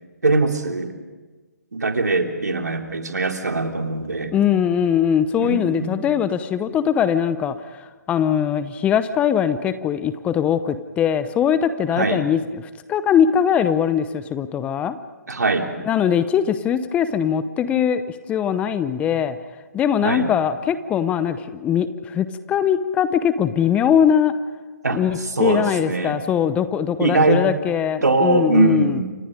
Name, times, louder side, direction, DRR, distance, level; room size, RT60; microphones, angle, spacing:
voice 1, 0.2-0.9 1.7-4.3 5.4-5.9 11.9-12.2 15.3-15.7 20.0-20.3 24.8-26.2 27.0-27.4 28.0-29.0, right 3 dB, 75° right, 4 dB, 3.3 m, -21 dB
voice 2, 4.3-12.6 12.9-15.0 15.8-18.0 18.3-19.4 19.7-24.3 24.9-29.0, left 8 dB, 15° left, 13 dB, 0.8 m, -21 dB
29.0 x 26.0 x 5.2 m, 1.3 s
figure-of-eight pair, 135°, 9 cm